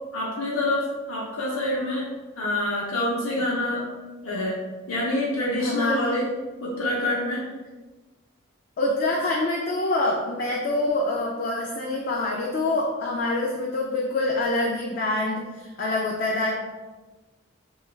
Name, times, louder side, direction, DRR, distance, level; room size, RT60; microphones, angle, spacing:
voice 1, 0.1-2.1 2.4-3.9 4.2-4.6 4.9-6.3 6.6-7.4, left 1 dB, 80° left, -6 dB, 0.6 m, -26 dB
voice 2, 5.6-6.0 8.8-16.6, left 2 dB, 45° left, -2 dB, 0.3 m, -25 dB
2.9 x 2.3 x 3.1 m, 1.2 s
head